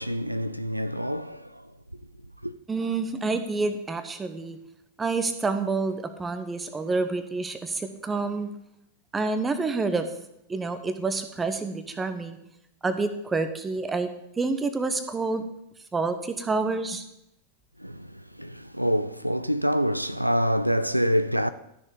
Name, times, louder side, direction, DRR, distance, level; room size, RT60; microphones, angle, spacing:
voice 1, 0.0-1.4 2.4-2.5 17.8-17.9 18.4-21.5, equal, 90° right, 0.4 m, -26 dB
voice 2, 2.7-4.6 5.0-8.5 9.1-10.1 10.5-12.4 12.8-14.1 14.4-15.4 15.9-17.0, right 3 dB, 15° right, 1.0 m, -28 dB
13.0 x 6.5 x 4.9 m
figure-of-eight pair, 90°, 0 cm